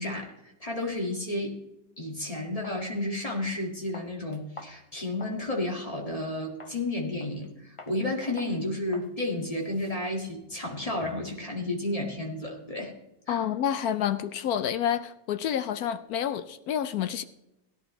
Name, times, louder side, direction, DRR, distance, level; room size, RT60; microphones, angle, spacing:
voice 1, 0.0-1.6 2.0-12.9 13.3-13.5, left 1 dB, 20° left, 0 dB, 1.9 m, -32 dB
sound 1, 2.1-2.2 2.6-2.8 3.3-3.6 3.9-5.4 5.8-6.0 6.6-6.8 7.2-7.5 7.8-8.0 8.4-8.6 8.9-9.1 9.4-11.3, left 3 dB, 45° left, 0.4 m, -48 dB
voice 2, 13.3-17.2, left 9 dB, 70° left, 12 dB, 0.9 m, -29 dB
17.0 x 11.0 x 3.2 m, 0.92 s
omnidirectional pair, 2.1 m